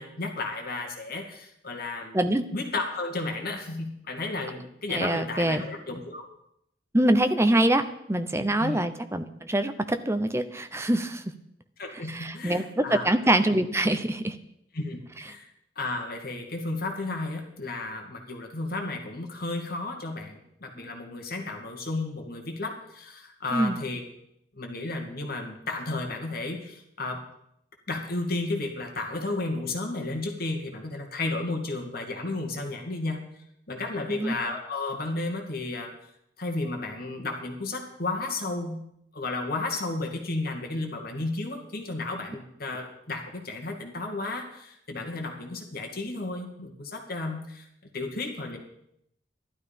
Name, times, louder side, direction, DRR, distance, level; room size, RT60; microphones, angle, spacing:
voice 1, 0.0-2.2 2.5-6.3 8.6-8.8 11.8-13.1 14.7-15.5 15.8-24.0 24.5-27.2 27.9-33.2 33.7-35.9 36.4-38.8 39.1-47.7 47.9-48.6, left 2 dB, 55° left, 3 dB, 2.3 m, -33 dB
voice 2, 4.9-5.6 6.9-11.2 12.1-14.4 23.5-23.8 34.1-34.3, right 1 dB, 15° right, 9 dB, 0.8 m, -24 dB
14.5 x 12.0 x 5.3 m, 0.76 s
head